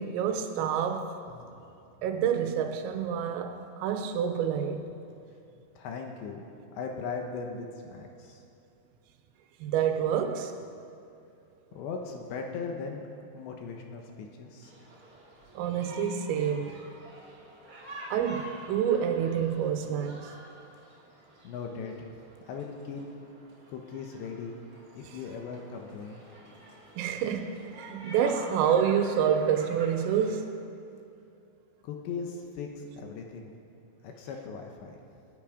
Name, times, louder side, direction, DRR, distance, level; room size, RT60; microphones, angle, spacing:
voice 1, 0.0-1.2 2.0-4.9 9.6-10.6 15.6-16.8 18.1-20.3 27.0-30.6, right 8 dB, 90° right, 3.7 m, -28 dB
voice 2, 1.3-1.6 5.6-6.5 6.7-8.4 11.7-13.1 13.3-14.7 21.4-22.1 22.4-23.0 23.7-24.6 24.9-26.2 31.8-33.5 34.0-35.0, left 5 dB, 75° left, 3.0 m, -39 dB
sound 1, 14.6-30.3, right 1 dB, 30° right, 2.9 m, -48 dB
27.0 x 9.3 x 5.0 m
omnidirectional pair, 5.8 m